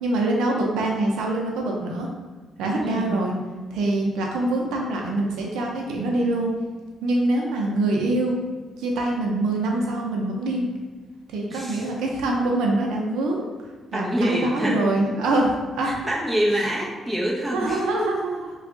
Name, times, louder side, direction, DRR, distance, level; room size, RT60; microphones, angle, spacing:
voice 1, 0.0-2.1 2.6-3.3 3.7-6.5 7.0-8.3 8.8-10.7 11.3-13.5 13.9-16.0 17.5-18.5, right 2 dB, 85° right, 0 dB, 0.6 m, -24 dB
voice 2, 2.8-3.2 11.5-11.9 13.9-14.8 15.8-17.9, equal, 10° right, -4 dB, 0.9 m, -26 dB
3.4 x 2.3 x 3.8 m, 1.3 s
cardioid pair, 90°, 0 cm